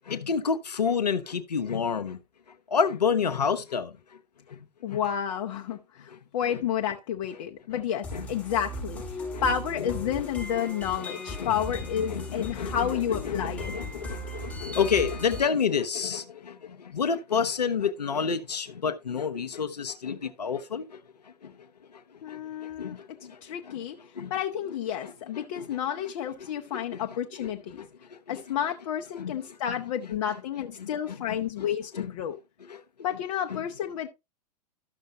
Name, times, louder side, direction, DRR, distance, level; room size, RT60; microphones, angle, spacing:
voice 1, 0.0-2.2 2.7-4.2 4.5-5.0 6.1-6.2 6.5-6.6 7.7-7.8 8.1-8.3 9.2-9.4 9.8-9.9 10.6-10.7 11.0-11.1 11.4-11.6 12.0-21.5 21.9-23.8 24.1-24.3 25.0-25.8 26.4-28.4 29.1-29.6 30.8-31.7 31.9-32.1 32.7-32.8 33.5-33.6, left 6 dB, 85° left, 0.7 m, -30 dB
voice 2, 4.8-9.0 9.4-13.7 22.2-24.0 24.3-27.8 28.3-32.4 33.0-34.1, left 9 dB, 55° left, 0.8 m, -31 dB
sound 1, 8.0-15.4, equal, 5° left, 5.1 m, -37 dB
12.5 x 6.4 x 2.8 m
hypercardioid pair, 105°, 20 cm